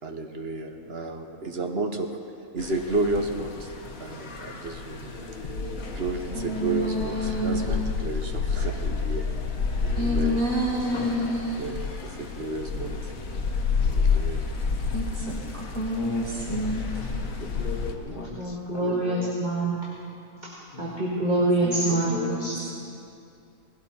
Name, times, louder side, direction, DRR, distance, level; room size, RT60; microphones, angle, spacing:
voice 1, 0.0-5.1 5.9-9.3 9.9-10.5 11.6-13.1 13.8-14.5 17.2-17.5 17.9-18.3, right 3 dB, 50° right, 5 dB, 1.2 m, -32 dB
sound 1, 2.6-17.9, left 5 dB, 90° left, 1.6 m, -30 dB
voice 2, 5.0-5.9 9.7-10.5 13.7-14.3 15.2-15.3 17.2-19.3 20.7-21.0 21.7-22.8, left 3 dB, 40° left, 3 dB, 1.4 m, -40 dB
voice 3, 6.3-7.7 9.9-11.6 14.9-15.4 15.7-17.1 21.6-21.8 22.1-22.5, equal, 80° right, -4 dB, 2.6 m, -28 dB
voice 4, 18.2-19.8 20.8-22.2 22.4-22.6, right 2 dB, 35° right, -7 dB, 2.1 m, -25 dB
19.5 x 16.5 x 4.3 m, 2.6 s
omnidirectional pair, 1.4 m